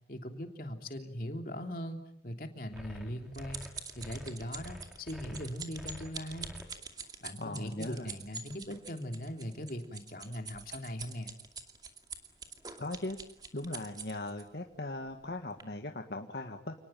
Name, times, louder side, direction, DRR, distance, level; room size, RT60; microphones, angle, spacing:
voice 1, 0.1-2.0 2.2-3.6 3.9-6.5 7.2-11.3, equal, 50° left, 4 dB, 3.2 m, -40 dB
sound 1, 2.7-6.6, equal, 5° right, 3.7 m, -47 dB
sound 2, 2.8-14.4 15.1-15.3 15.6-15.7, right 5 dB, 25° right, 2.5 m, -45 dB
voice 2, 7.4-8.1 12.8-13.2 13.5-16.7, left 2 dB, 70° left, 4 dB, 1.8 m, -39 dB
29.5 x 19.5 x 9.1 m, 0.78 s
head